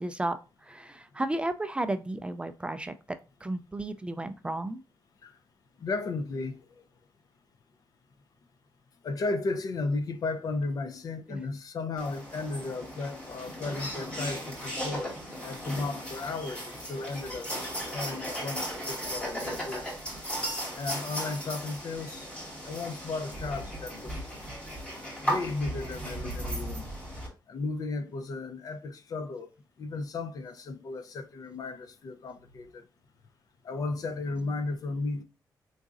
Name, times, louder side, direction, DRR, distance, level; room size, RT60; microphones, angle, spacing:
voice 1, 0.0-4.8 11.3-11.4 25.8-25.9, right 1 dB, 15° right, 0.3 m, -34 dB
voice 2, 5.8-6.8 9.0-15.2 15.4-17.5 17.9-19.9 20.7-22.3 22.6-24.2 25.2-26.9 27.5-29.5 29.8-32.8 33.6-35.2, left 3 dB, 50° left, 0.6 m, -34 dB
sound 1, 12.0-27.3, equal, 15° left, 2.1 m, -36 dB
3.9 x 3.6 x 2.5 m
cardioid pair, 120°, 8 cm